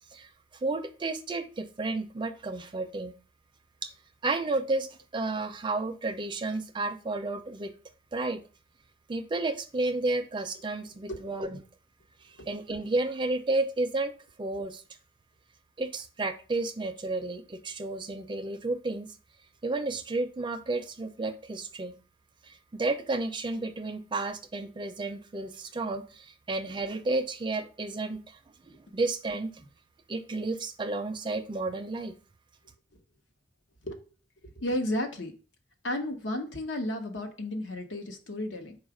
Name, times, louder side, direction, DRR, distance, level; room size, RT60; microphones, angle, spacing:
voice 1, 0.6-3.1 3.8-3.9 4.2-4.9 5.1-7.7 8.1-8.4 9.1-11.6 12.5-14.1 14.4-14.8 15.8-19.1 19.6-21.9 22.5-28.4 28.7-29.6 30.1-32.1, right 2 dB, 25° right, 0.4 m, -32 dB
voice 2, 34.6-35.3 35.8-38.8, left 1 dB, 80° left, 0.9 m, -33 dB
4.7 x 2.4 x 4.8 m
head